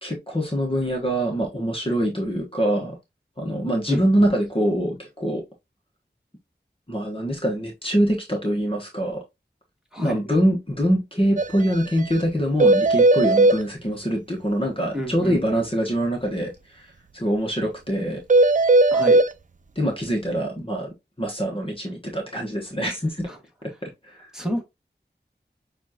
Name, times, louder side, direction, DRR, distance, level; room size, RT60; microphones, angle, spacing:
voice 1, 0.0-2.9 3.4-5.4 6.9-9.2 10.0-16.8 17.1-18.2 19.7-20.9 21.2-23.3 23.8-24.3, equal, 30° left, 1.2 m, -24 dB
voice 2, 3.9-4.2 9.9-10.2 14.9-15.6 18.9-19.2 23.3-23.4 24.3-24.7, equal, 5° right, 1.8 m, -30 dB
sound 1, 11.4-11.5 11.7-11.8 12.1-12.2 12.6-13.6 18.3-19.3, right 2 dB, 45° right, 0.4 m, -16 dB
7.2 x 2.5 x 2.8 m
wide cardioid pair, 45°, 18 cm